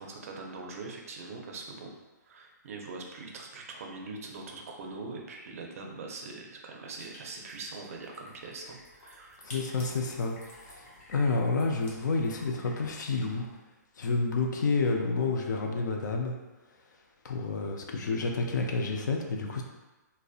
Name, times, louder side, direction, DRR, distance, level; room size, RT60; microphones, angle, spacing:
voice 1, 0.0-1.9 2.2-9.4, right 3 dB, 50° right, 1 dB, 0.4 m, -42 dB
sound 1, 7.0-13.6, left 1 dB, 45° left, 0.7 m, -52 dB
voice 2, 9.4-10.4 11.1-13.5 14.0-16.3 17.2-19.6, left 3 dB, 75° left, 2 dB, 0.4 m, -29 dB
2.5 x 2.0 x 2.4 m, 1.1 s
hypercardioid pair, 165°, 10 cm